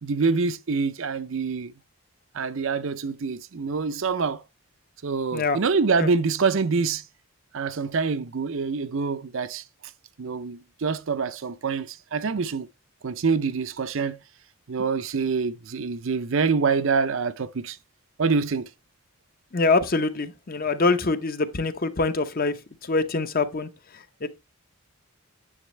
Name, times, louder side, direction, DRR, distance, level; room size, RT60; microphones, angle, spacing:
voice 1, 0.0-1.7 2.3-4.4 5.0-7.0 7.5-9.6 10.2-12.7 13.0-14.2 14.7-17.8 18.2-18.7, right 4 dB, 60° right, 0.6 m, -26 dB
voice 2, 19.5-22.5 22.8-23.7 24.2-24.3, left 3 dB, 40° left, 0.8 m, -24 dB
9.9 x 7.2 x 3.2 m
head